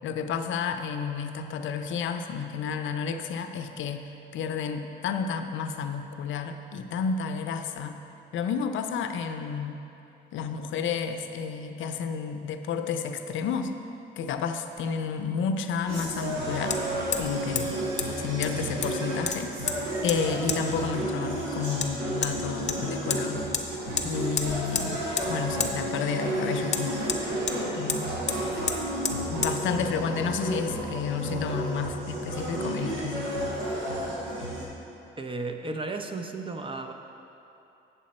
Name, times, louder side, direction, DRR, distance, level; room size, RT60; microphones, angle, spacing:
voice 1, 0.0-8.0 8.3-9.8 10.3-13.7 14.2-16.8 17.2-17.8 18.2-23.4 24.0-27.1 27.7-28.1 28.5-28.7 29.1-33.3, left 6 dB, 75° left, 7 dB, 0.5 m, -31 dB
Hammer, 14.8-14.9 16.7-16.8 17.1-17.3 17.6-17.7 18.0-18.1 18.4-19.0 19.3-19.8 20.1-20.2 20.5-20.6 21.8-21.9 22.2-22.3 22.7-23.2 23.5-23.7 24.0-24.1 24.4-24.9 25.2-25.3 25.6-25.7 26.7-27.6 27.9-28.0 28.3-28.4 28.7-28.8 29.0-29.2 29.4-29.5, left 5 dB, 35° left, 0.7 m, -29 dB
sound 1, 15.9-34.6, right 1 dB, 85° right, 1.8 m, -32 dB
voice 2, 35.2-36.9, right 3 dB, 25° right, 5 dB, 0.6 m, -34 dB
8.5 x 6.9 x 4.2 m, 2.9 s
cardioid pair, 90°, 20 cm